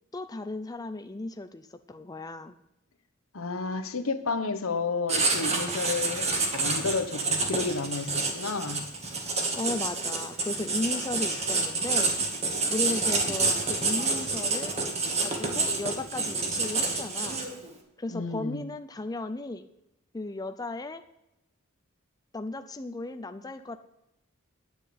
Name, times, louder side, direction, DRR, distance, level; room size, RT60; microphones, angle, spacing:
voice 1, 0.1-2.5 9.5-12.1 12.7-14.8 15.2-17.4 18.0-19.7 20.1-21.0 22.3-23.8, left 2 dB, 20° left, 9 dB, 0.5 m, -35 dB
voice 2, 3.3-8.8 18.1-18.6, left 4 dB, 80° left, 9 dB, 1.1 m, -31 dB
Writing, 5.1-17.7, right 3 dB, 30° right, 1.7 m, -28 dB
9.8 x 6.3 x 8.5 m, 0.87 s
head